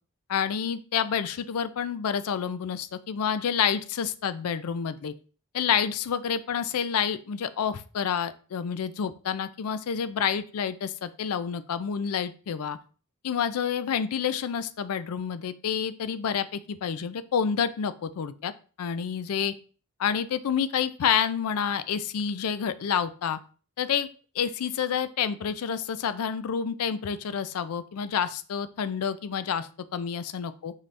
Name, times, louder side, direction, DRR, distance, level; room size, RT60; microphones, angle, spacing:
voice 1, 0.3-5.1 5.5-12.8 13.2-18.5 18.8-19.5 20.0-23.4 23.8-24.1 24.4-30.7, left 7 dB, 80° left, 13 dB, 0.4 m, -28 dB
5.5 x 2.5 x 3.3 m, 0.38 s
head